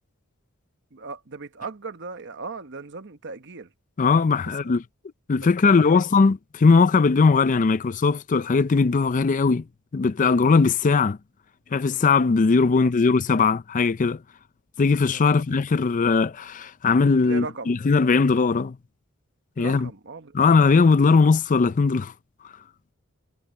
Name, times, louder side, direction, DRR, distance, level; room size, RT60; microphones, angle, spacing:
voice 1, 0.9-3.7 4.5-4.7 5.4-6.1 12.7-12.9 15.1-15.6 17.2-17.8 19.6-20.4, right 4 dB, 55° right, 1.2 m, -38 dB
voice 2, 4.0-4.8 5.3-9.6 9.9-11.2 11.7-14.2 14.8-18.8 19.6-19.9 20.3-22.1, left 4 dB, 35° left, 0.4 m, -19 dB
head